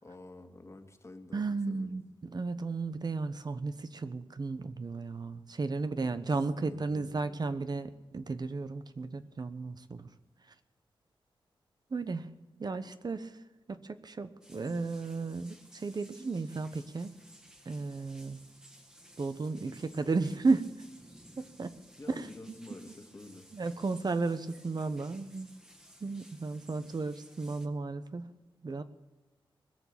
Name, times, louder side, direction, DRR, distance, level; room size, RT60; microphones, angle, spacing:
voice 1, 0.0-2.0 6.0-7.4 22.0-23.5, left 2 dB, 30° left, 6 dB, 2.0 m, -50 dB
voice 2, 1.3-10.1 11.9-12.3 12.6-13.3 13.7-17.2 17.7-18.4 19.2-20.7 21.4-21.8 22.1-22.6 23.5-25.5 26.0-28.4 28.6-28.8, right 3 dB, 50° right, 11 dB, 1.1 m, -34 dB
sound 1, 14.4-27.7, equal, 5° right, 1.8 m, -57 dB
21.0 x 7.2 x 9.0 m, 1.1 s
cardioid pair, 75°, 9 cm